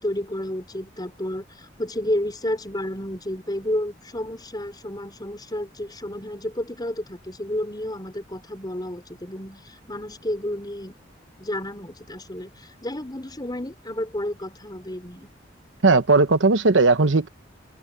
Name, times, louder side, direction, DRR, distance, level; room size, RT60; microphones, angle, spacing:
voice 1, 0.0-11.0 11.4-15.3, left 1 dB, 20° left, 5.0 m, -31 dB
voice 2, 15.8-17.3, right 3 dB, 90° right, 1.0 m, -17 dB
head